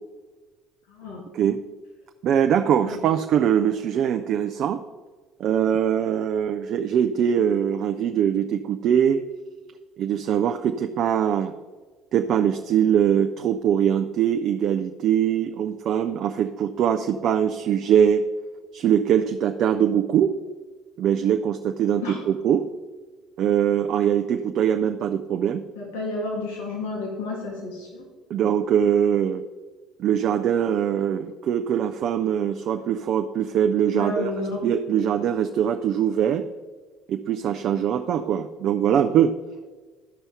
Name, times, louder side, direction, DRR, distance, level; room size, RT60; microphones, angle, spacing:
voice 1, 0.9-1.2 2.8-3.0 22.0-22.2 25.8-28.0 33.9-34.6, left 2 dB, 75° left, -2 dB, 2.1 m, -31 dB
voice 2, 2.2-4.8 5.4-9.2 10.0-11.5 12.1-18.2 18.7-20.3 21.0-22.7 23.4-25.6 28.3-29.4 30.0-34.3 34.6-36.4 37.1-39.3, right 9 dB, 55° right, 6 dB, 0.5 m, -22 dB
12.5 x 5.5 x 4.5 m, 1.3 s
hypercardioid pair, 60°, 0 cm